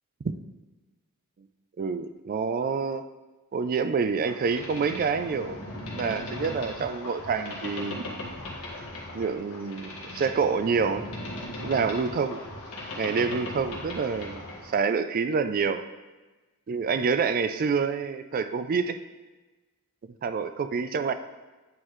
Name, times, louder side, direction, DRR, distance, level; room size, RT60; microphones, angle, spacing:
voice 1, 1.8-3.0 3.5-5.6 6.0-8.1 9.1-11.1 11.6-12.4 13.0-14.4 14.7-15.8 16.7-19.0 20.2-21.1, right 5 dB, 40° right, 10 dB, 0.3 m, -27 dB
Boat Water vehicle, 4.2-14.7, left 1 dB, 85° left, 1.4 m, -38 dB
8.8 x 3.9 x 3.1 m, 1.2 s
head